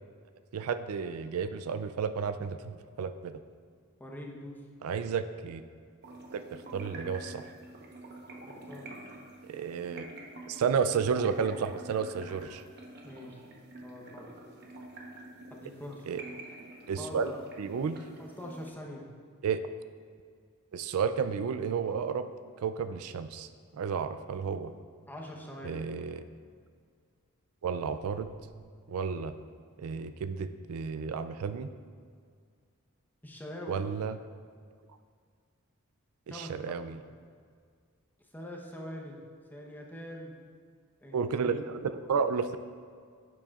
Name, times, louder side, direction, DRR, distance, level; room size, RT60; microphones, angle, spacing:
voice 1, 0.5-3.4 4.8-5.6 6.3-7.4 9.4-10.0 10.5-12.6 16.1-16.2 16.9-17.3 17.6-18.0 19.4-19.6 20.7-22.3 22.6-23.5 23.7-24.7 25.6-26.2 27.6-28.3 28.9-29.4 29.8-31.7 33.7-34.2 36.3-37.0 41.1-42.6, right 6 dB, 85° right, 11 dB, 0.4 m, -32 dB
voice 2, 4.0-4.6 8.5-8.8 13.0-13.4 13.8-14.3 15.5-16.0 17.0-17.4 18.2-19.0 25.1-25.8 33.2-33.8 36.3-37.0 38.3-39.2 39.5-40.3 41.0-41.4, left 1 dB, 10° left, -1 dB, 0.9 m, -43 dB
sound 1, 6.0-18.7, right 2 dB, 50° right, 1.0 m, -47 dB
sound 2, 28.2-28.6, right 2 dB, 60° left, 1.1 m, -50 dB
10.0 x 7.6 x 2.4 m, 2.1 s
head